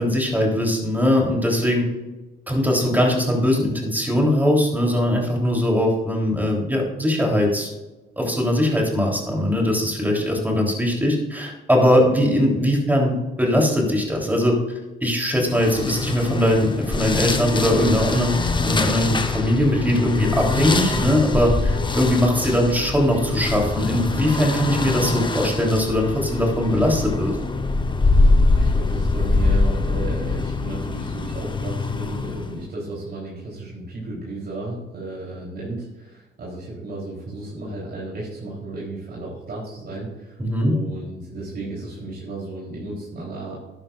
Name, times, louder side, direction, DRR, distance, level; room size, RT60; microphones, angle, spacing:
voice 1, 0.0-1.8 2.5-7.7 8.2-14.6 15.0-18.3 18.6-27.4 40.4-40.7, equal, 10° right, -1 dB, 3.5 m, -20 dB
sound 1, 15.5-32.6, left 3 dB, 25° left, 1.0 m, -23 dB
voice 2, 28.1-43.6, right 2 dB, 55° right, -5 dB, 3.8 m, -34 dB
11.5 x 10.5 x 2.5 m, 1.1 s
cardioid pair, 90°, 20 cm